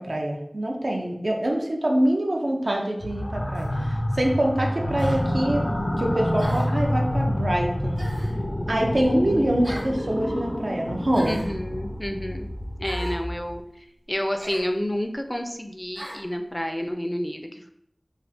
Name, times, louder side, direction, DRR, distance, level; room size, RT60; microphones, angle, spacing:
voice 1, 0.0-3.7 4.2-5.6 6.0-8.0 8.7-11.4, right 1 dB, 80° right, 0 dB, 0.5 m, -25 dB
sound 1, 3.0-13.5, equal, 90° left, 0.5 m, -28 dB
sound 2, 3.5-3.8 5.0-5.2 6.4-6.8 8.0-8.4 9.6-9.9 11.1-11.5 12.8-13.2 14.4-14.7 15.9-16.2, equal, 55° right, 1.1 m, -38 dB
voice 2, 11.2-12.5 12.8-13.6 14.1-17.7, equal, 20° left, 5 dB, 0.3 m, -29 dB
3.3 x 2.4 x 2.7 m, 0.74 s
wide cardioid pair, 45°, 0 cm